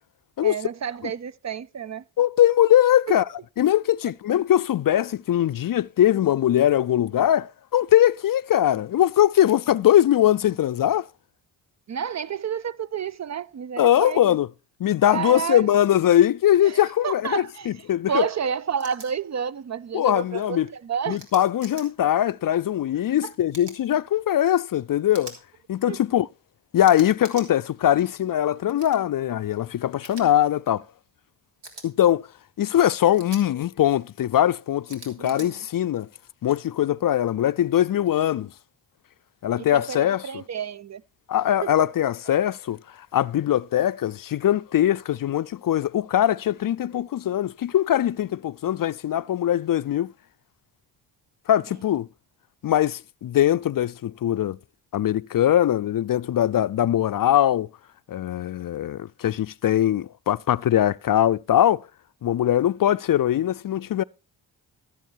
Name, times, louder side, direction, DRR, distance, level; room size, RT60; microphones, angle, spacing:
voice 1, 0.4-2.0 3.1-3.2 11.9-14.4 15.1-15.7 16.6-17.7 18.1-21.2 23.2-23.3 25.9-26.0 35.2-35.6 39.6-41.0 41.6-41.9, right 7 dB, 40° right, 0.5 m, -30 dB
voice 2, 2.2-3.2 3.6-11.1 13.8-14.5 14.8-18.3 19.9-20.7 21.1-25.3 25.7-26.3 26.7-30.8 31.8-32.2 32.6-36.1 36.4-38.5 39.4-40.3 41.3-42.8 43.1-50.1 51.5-52.1 52.6-54.6 54.9-57.7 58.1-61.8 62.2-64.0, left 11 dB, 50° left, 0.5 m, -21 dB
sound 1, 18.8-19.1 21.2-21.9 23.5-23.8 25.1-25.4 26.8-27.5 28.8-29.0 30.0-30.2 31.6-31.9 33.1-33.4 34.9-35.5, right 2 dB, 65° right, 3.3 m, -42 dB
13.5 x 7.5 x 4.5 m
supercardioid pair, 55°, 45 cm